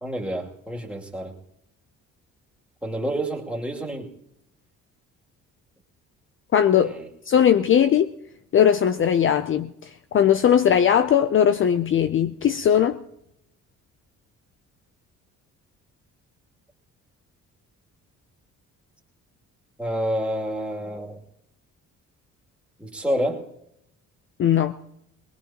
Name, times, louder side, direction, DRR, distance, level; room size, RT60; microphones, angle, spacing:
voice 1, 0.0-1.3 2.8-4.1 6.7-7.1 19.8-21.2 22.8-23.5, equal, 5° right, 2.7 m, -28 dB
voice 2, 6.5-6.9 7.3-8.1 8.5-9.7 10.1-13.0 24.4-24.7, left 9 dB, 45° left, 0.5 m, -19 dB
21.0 x 19.5 x 2.9 m
cardioid pair, 90°, 30 cm